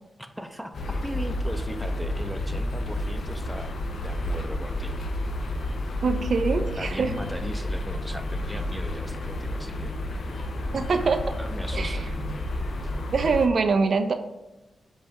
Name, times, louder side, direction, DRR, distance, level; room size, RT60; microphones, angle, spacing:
voice 1, 0.2-3.7 4.0-5.0 6.8-9.9 10.7-10.8 11.4-12.1, equal, ahead, 6 dB, 0.5 m, -38 dB
sound 1, 0.7-13.5, left 1 dB, 65° left, 0.5 m, -30 dB
voice 2, 6.0-7.1 10.7-11.2 11.7-12.1 13.1-14.1, right 4 dB, 60° right, 7 dB, 0.4 m, -24 dB
5.4 x 2.3 x 4.0 m, 1.0 s
cardioid pair, 75°, 0 cm